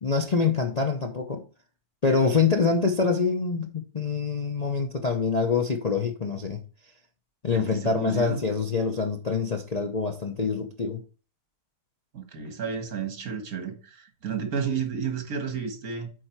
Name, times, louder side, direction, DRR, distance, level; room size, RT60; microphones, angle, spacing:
voice 1, 0.0-1.4 2.0-6.6 7.4-11.0, left 4 dB, 35° left, 0.7 m, -25 dB
voice 2, 7.5-8.4 12.1-16.1, right 6 dB, 60° right, 2.1 m, -31 dB
8.5 x 4.6 x 4.6 m
omnidirectional pair, 1.7 m